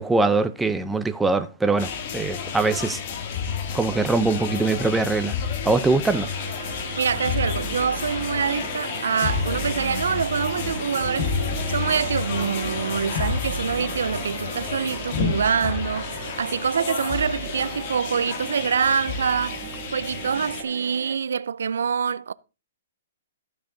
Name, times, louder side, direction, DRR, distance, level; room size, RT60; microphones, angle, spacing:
voice 1, 0.0-3.0 3.7-5.4 5.6-6.3, right 3 dB, 5° right, 0.6 m, -22 dB
sound 1, 1.8-20.6, left 6 dB, 40° left, 1.8 m, -30 dB
voice 2, 5.0-5.3 6.9-11.3 11.7-19.6 19.9-22.3, right 6 dB, 85° right, 0.4 m, -25 dB
sound 2, 6.1-21.2, right 8 dB, 50° right, 1.4 m, -38 dB
14.5 x 6.4 x 3.9 m
hypercardioid pair, 155°, 0 cm